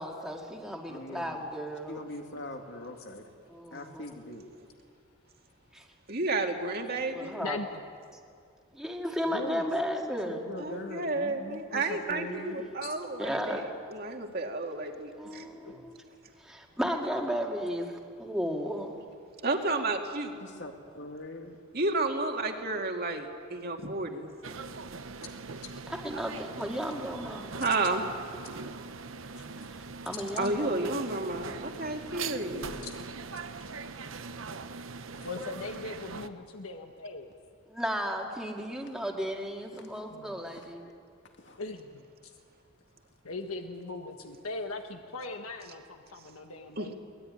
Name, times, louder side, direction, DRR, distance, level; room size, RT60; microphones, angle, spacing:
voice 1, 0.0-2.0 3.5-4.0 5.7-5.8 7.1-7.6 8.7-10.5 13.2-13.6 15.2-16.0 16.4-18.9 25.9-27.5 29.7-31.0 37.7-40.9, equal, 5° right, 0 dB, 2.1 m, -34 dB
voice 2, 0.9-1.4 1.9-3.3 3.7-4.4 9.3-9.7 10.3-12.7 20.4-21.6 32.5-32.8 39.7-40.0 40.5-40.7 41.4-41.6, left 1 dB, 55° left, 3 dB, 2.5 m, -41 dB
voice 3, 6.1-7.4 10.6-15.4 19.4-20.4 21.7-24.3 27.5-28.0 30.4-32.7 46.8-46.9, right 2 dB, 45° right, 2 dB, 2.2 m, -31 dB
voice 4, 7.4-7.8 12.8-12.9 15.6-15.9 25.6-25.7 29.4-29.5 32.8-33.0 35.2-37.4 40.1-40.4 41.6-42.3 43.2-46.9, left 3 dB, 85° left, 4 dB, 1.5 m, -40 dB
sound 1, 24.4-36.3, right 4 dB, 70° right, 0.9 m, -41 dB
23.0 x 20.0 x 9.8 m, 2.3 s
head